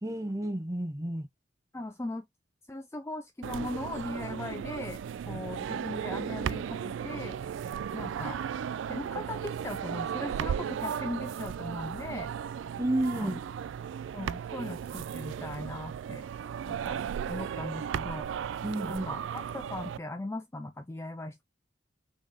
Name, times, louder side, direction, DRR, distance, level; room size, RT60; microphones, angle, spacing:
voice 1, 0.0-1.3 12.8-13.4 18.6-19.1, right 1 dB, 15° right, 0.9 m, -31 dB
voice 2, 1.7-2.3 2.7-5.0 5.3-7.4 7.9-8.4 8.9-12.3 13.2-13.4 14.1-16.2 16.7-17.0 17.3-18.3 18.9-21.4, left 2 dB, 15° left, 0.3 m, -39 dB
sound 1, 3.4-20.0, right 8 dB, 75° right, 0.3 m, -35 dB
3.8 x 3.4 x 3.6 m
head